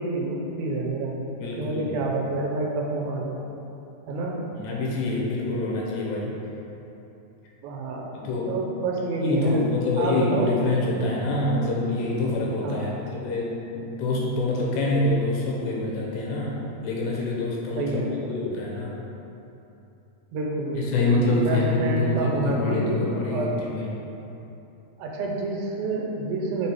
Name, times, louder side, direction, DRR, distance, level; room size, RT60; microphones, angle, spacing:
voice 1, 0.0-1.2 1.6-3.4 4.1-4.4 7.6-8.1 8.5-9.6 10.0-10.7 12.6-13.1 17.8-18.4 20.3-23.6 25.0-26.7, right 2 dB, 90° right, -1 dB, 2.6 m, -28 dB
voice 2, 1.3-2.0 4.5-6.4 8.1-8.6 9.2-19.0 20.7-24.0, left 2 dB, 90° left, -3 dB, 2.6 m, -26 dB
6.1 x 3.6 x 4.4 m, 2.9 s
omnidirectional pair, 4.2 m